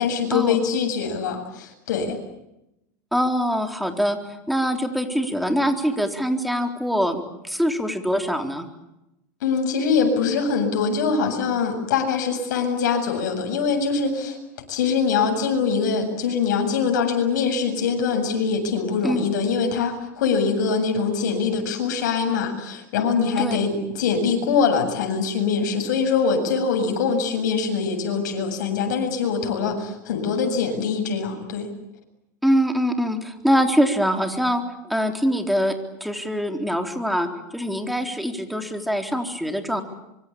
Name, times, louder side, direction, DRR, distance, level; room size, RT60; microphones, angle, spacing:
voice 1, 0.0-2.2 9.4-14.4 14.7-31.7, left 5 dB, 75° left, 4 dB, 7.9 m, -23 dB
voice 2, 3.1-4.2 4.5-8.7 19.0-19.2 23.4-23.6 32.4-35.8 36.0-39.8, equal, ahead, 5 dB, 3.9 m, -23 dB
25.0 x 24.5 x 8.7 m, 0.89 s
supercardioid pair, 115°, 10 cm